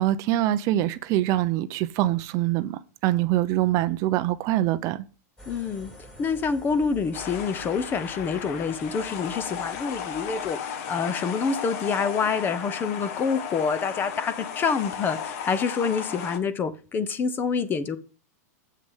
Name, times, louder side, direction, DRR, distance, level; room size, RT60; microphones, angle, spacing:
voice 1, 0.0-5.0, right 14 dB, 40° right, 0.6 m, -24 dB
sound 1, 5.4-10.5, right 1 dB, 5° left, 3.4 m, -48 dB
voice 2, 5.5-5.9 6.2-18.0, left 5 dB, 20° left, 0.8 m, -27 dB
sound 2, 7.1-16.4, left 8 dB, 55° left, 1.3 m, -35 dB
7.6 x 6.3 x 5.6 m
supercardioid pair, 140°, 9 cm